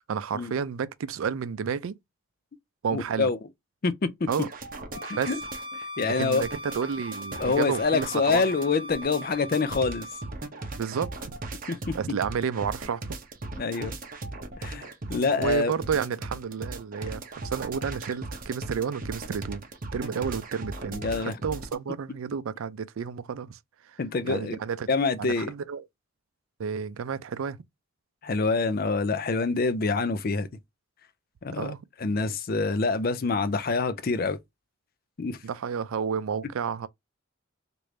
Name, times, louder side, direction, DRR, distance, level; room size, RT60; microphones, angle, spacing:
voice 1, 0.1-2.0 2.8-3.3 4.3-4.5 5.2-5.3 6.2-8.4 10.8-11.1 11.9-13.2 15.4-19.6 19.9-23.6 23.8-24.0 24.2-24.9 25.2-25.9 26.6-27.6 31.6-31.8 35.4-36.9, right 6 dB, 80° right, 0.4 m, -31 dB
voice 2, 2.9-3.4 3.8-4.3 5.3-5.4 6.0-6.4 7.4-10.1 11.7-11.9 13.6-14.0 14.6-15.7 20.9-21.3 24.0-24.6 24.9-25.5 28.2-30.5 31.4-31.7 32.0-34.4 35.2-35.4, left 4 dB, 45° left, 0.4 m, -26 dB
sound 1, 4.3-21.7, right 2 dB, 40° right, 0.7 m, -38 dB
Bowed string instrument, 4.9-10.3, equal, 25° right, 1.1 m, -39 dB
3.2 x 2.5 x 3.1 m
head